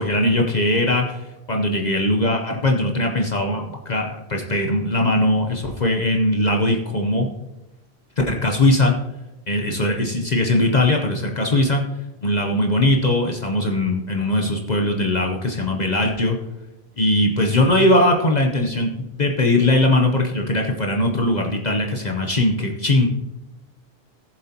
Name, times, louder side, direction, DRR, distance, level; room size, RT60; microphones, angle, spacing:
voice 1, 0.0-7.3 8.3-8.9 9.5-11.8 12.2-16.4 17.0-23.1, left 1 dB, 45° left, 2 dB, 0.9 m, -20 dB
15.0 x 7.4 x 2.9 m, 0.96 s
omnidirectional pair, 1.0 m